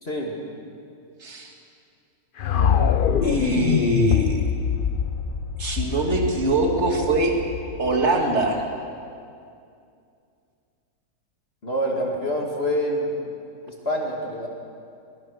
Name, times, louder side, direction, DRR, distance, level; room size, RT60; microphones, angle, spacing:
voice 1, 0.0-0.4 11.6-13.1 13.7-14.5, equal, 35° left, -1 dB, 2.6 m, -26 dB
voice 2, 1.2-1.5 3.2-4.5 5.6-7.4 7.8-8.6, right 2 dB, 40° right, 1 dB, 2.6 m, -23 dB
sound 1, 2.4-8.5, left 7 dB, 70° left, 0.5 m, -24 dB
22.5 x 22.0 x 6.5 m, 2.4 s
omnidirectional pair, 1.8 m